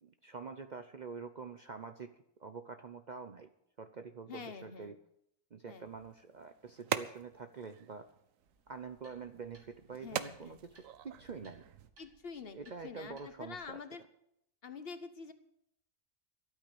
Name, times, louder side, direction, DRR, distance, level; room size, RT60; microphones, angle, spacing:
voice 1, 0.0-2.1 2.4-3.5 3.8-5.0 5.5-8.1 8.7-11.7 12.5-13.8, right 5 dB, 45° right, 8 dB, 0.6 m, -46 dB
voice 2, 4.3-5.0 5.7-5.9 9.9-10.6 12.0-14.0 14.6-15.3, left 5 dB, 50° left, 10 dB, 1.1 m, -47 dB
sound 1, 5.8-11.9, right 10 dB, 85° right, 1.1 m, -43 dB
sound 2, 8.4-13.7, right 2 dB, 65° right, 2.8 m, -65 dB
12.5 x 8.7 x 8.3 m, 0.77 s
omnidirectional pair, 1.3 m